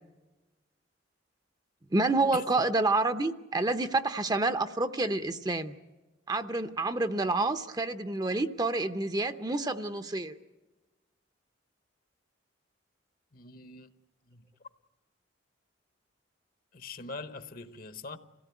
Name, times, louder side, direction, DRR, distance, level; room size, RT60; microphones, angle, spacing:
voice 1, 1.9-5.8 6.3-10.4, right 2 dB, 20° right, 0.7 m, -28 dB
voice 2, 13.3-13.9 14.3-14.5 16.7-18.2, left 3 dB, 50° left, 1.1 m, -42 dB
27.0 x 17.0 x 9.3 m
head